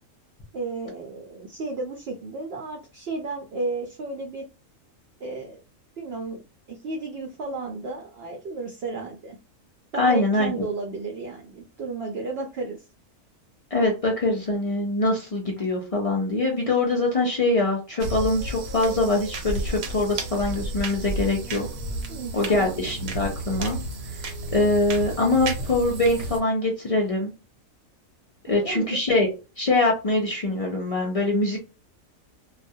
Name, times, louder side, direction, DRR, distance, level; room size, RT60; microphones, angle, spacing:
voice 1, 0.5-4.5 5.2-5.6 6.0-6.4 6.7-9.4 9.9-12.8 22.1-22.9 28.4-29.0, right 3 dB, 65° right, 2 dB, 0.6 m, -33 dB
voice 2, 10.0-10.5 13.7-21.7 22.3-23.8 24.5-27.3 28.5-29.3 29.6-31.6, left 2 dB, 70° left, -1 dB, 0.3 m, -23 dB
sound 1, 18.0-26.4, right 2 dB, 90° right, 1.1 m, -32 dB
2.3 x 2.1 x 2.6 m, 0.31 s
omnidirectional pair, 1.4 m